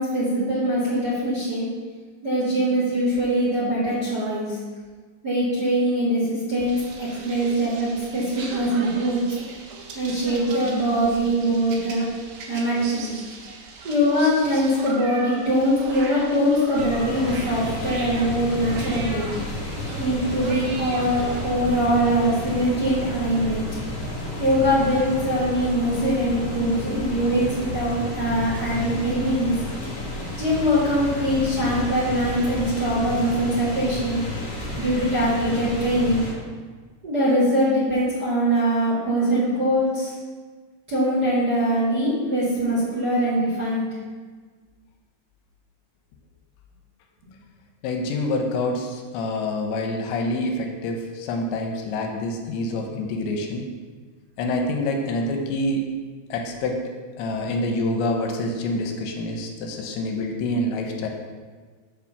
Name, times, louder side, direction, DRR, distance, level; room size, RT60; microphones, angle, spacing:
voice 1, 0.0-1.7 2.2-4.6 5.2-9.2 9.9-12.0 12.5-13.1 13.8-19.3 20.0-23.6 24.4-29.5 30.4-34.2 34.8-36.2 37.0-40.2 40.9-43.9, equal, 35° right, -8 dB, 1.8 m, -22 dB
sound 1, 6.6-21.5, right 3 dB, 80° right, 3.5 m, -39 dB
sound 2, 16.7-36.3, left 1 dB, 45° left, 2.1 m, -31 dB
voice 2, 47.8-53.7 54.4-55.8 56.3-56.8 57.2-61.1, left 1 dB, 80° left, 3 dB, 3.0 m, -26 dB
7.4 x 4.9 x 7.0 m, 1.5 s
omnidirectional pair, 5.2 m